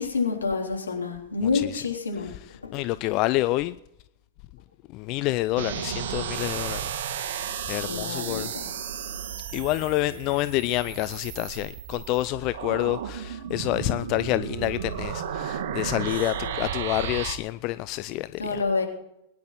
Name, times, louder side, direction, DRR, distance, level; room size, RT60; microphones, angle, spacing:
voice 1, 0.0-2.3 2.6-2.7 7.7-8.5 16.4-16.7 18.4-18.8, left 4 dB, 85° left, 3.4 m, -28 dB
voice 2, 2.7-3.7 4.9-6.9 7.2-8.5 9.5-18.6, left 18 dB, 45° left, 0.5 m, -28 dB
sound 1, 5.6-17.4, right 8 dB, 60° right, 1.5 m, -33 dB
21.5 x 10.5 x 4.3 m
figure-of-eight pair, 100°, 0 cm